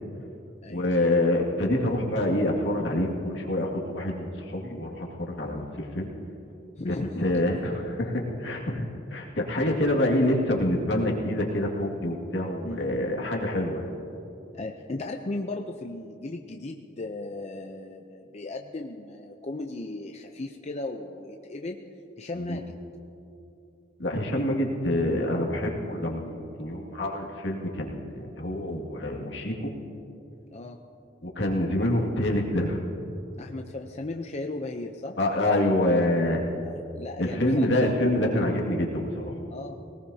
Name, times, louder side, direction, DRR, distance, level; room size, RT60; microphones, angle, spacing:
voice 1, 0.7-6.1 7.2-13.9 22.4-22.6 24.0-29.7 31.2-32.8 35.2-36.4 37.2-39.3, left 1 dB, 70° left, 0 dB, 2.2 m, -26 dB
voice 2, 6.8-7.4 12.6-12.8 14.5-21.8 22.2-22.8 30.5-30.8 33.4-35.2 36.6-37.9 39.5-39.9, left 2 dB, 35° left, 3 dB, 0.6 m, -36 dB
20.0 x 19.0 x 2.8 m, 2.8 s
head